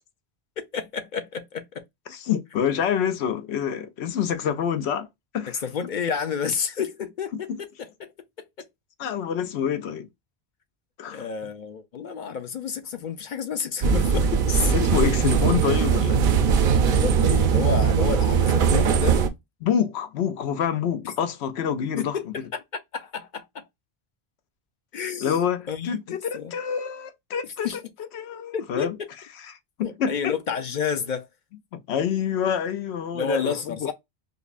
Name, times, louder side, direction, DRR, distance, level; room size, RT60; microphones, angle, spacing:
voice 1, 0.7-1.8 5.6-8.1 8.4-8.7 11.1-14.7 16.9-19.2 21.0-21.1 22.0-22.6 22.9-23.6 24.9-25.4 25.7-26.5 27.6-27.8 28.5-29.0 29.8-31.3 33.1-33.9, left 6 dB, 55° left, 0.6 m, -30 dB
voice 2, 2.1-5.1 5.3-5.6 9.0-10.1 11.0-11.3 14.7-16.2 19.6-22.2 25.2-26.0 26.3-27.7 28.1-28.9 29.8-30.3 31.7-33.9, left 8 dB, 90° left, 0.9 m, -27 dB
sound 1, 13.8-19.3, right 6 dB, 65° right, 0.7 m, -20 dB
5.2 x 2.1 x 2.4 m
omnidirectional pair, 1.1 m